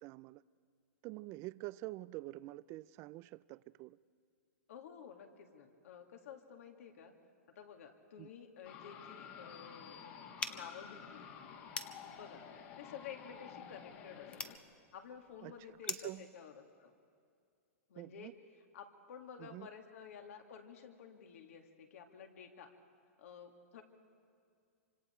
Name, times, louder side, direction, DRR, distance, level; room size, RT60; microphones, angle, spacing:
voice 1, 0.0-0.4 1.0-4.0 8.2-8.3 15.4-15.5 15.9-16.3 18.0-18.3 19.4-19.7, right 19 dB, 35° right, 0.4 m, -46 dB
voice 2, 4.7-7.1 7.5-10.0 10.5-11.3 12.1-14.5 14.9-16.9 17.9-18.3 18.7-22.7 23.2-23.8, left 7 dB, 70° left, 2.3 m, -52 dB
sound 1, 8.6-14.6, left 7 dB, 45° left, 2.2 m, -52 dB
sound 2, 10.4-16.2, left 4 dB, 15° left, 0.8 m, -46 dB
26.5 x 25.5 x 4.5 m
hypercardioid pair, 130°, 8 cm